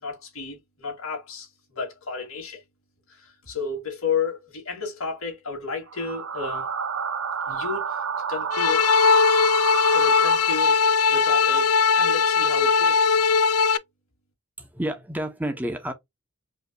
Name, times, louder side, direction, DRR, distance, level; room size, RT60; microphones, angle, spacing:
voice 1, 0.0-2.6 3.1-6.7 7.5-8.0 8.3-8.9 9.7-13.2, left 5 dB, 70° left, 2.3 m, -32 dB
sound 1, 5.9-11.0, right 6 dB, 65° right, 0.6 m, -30 dB
sound 2, 8.5-13.8, left 5 dB, 85° left, 0.4 m, -19 dB
voice 2, 14.6-15.9, right 1 dB, 10° right, 0.7 m, -30 dB
4.9 x 2.9 x 2.2 m
head